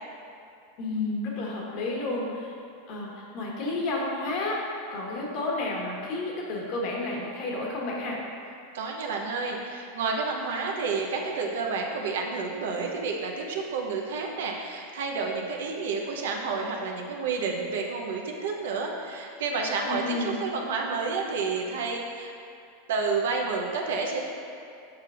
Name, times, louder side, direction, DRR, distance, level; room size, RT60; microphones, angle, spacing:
voice 1, 0.8-2.5 2.9-4.6 4.9-8.2 19.8-20.4, left 2 dB, 50° left, -3 dB, 1.4 m, -31 dB
voice 2, 8.7-22.3 22.9-24.2, right 4 dB, 80° right, 0 dB, 0.8 m, -30 dB
7.3 x 5.7 x 2.5 m, 2.6 s
supercardioid pair, 130°, 0 cm